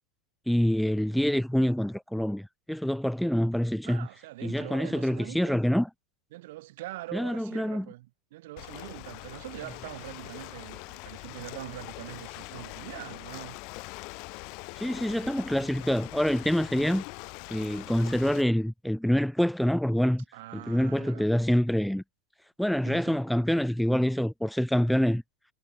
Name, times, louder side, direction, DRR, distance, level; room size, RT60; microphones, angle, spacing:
voice 1, 0.5-4.1 4.4-5.9 7.1-7.9 14.7-17.0 17.5-20.2 20.7-22.0 22.6-25.2, equal, ahead, 0.5 m, -26 dB
voice 2, 3.8-5.7 6.3-13.6 20.3-21.3 22.9-23.2, right 18 dB, 60° right, 7.0 m, -43 dB
Ocean, 8.6-18.4, left 31 dB, 50° left, 7.2 m, -43 dB
hypercardioid pair, 100°, 0 cm